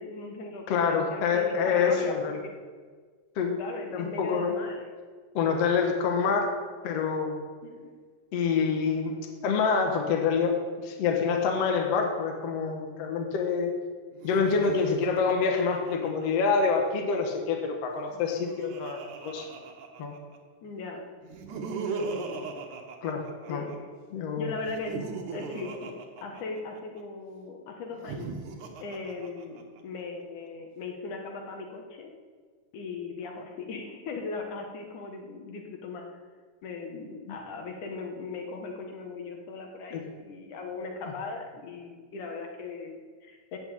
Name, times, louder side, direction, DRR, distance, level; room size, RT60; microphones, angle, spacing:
voice 1, 0.0-2.6 3.6-4.9 7.6-7.9 20.6-21.0 22.1-22.5 23.5-23.8 24.4-24.9 25.3-28.3 28.8-32.1 32.7-36.1 36.6-43.6, left 3 dB, 75° left, 2 dB, 2.8 m, -39 dB
voice 2, 0.7-2.4 3.4-3.6 3.9-4.6 5.3-6.5 6.8-7.4 8.3-9.2 9.4-13.7 14.2-19.4 20.0-20.1 23.0-23.6 24.1-24.5 37.3-37.4 39.9-40.0, left 5 dB, 60° left, 2 dB, 2.2 m, -26 dB
Laughter, 14.1-16.7 18.0-20.4 21.2-23.8 24.6-27.0 27.9-29.8, right 4 dB, 75° right, 2.7 m, -38 dB
14.0 x 6.2 x 8.5 m, 1.6 s
omnidirectional pair, 3.7 m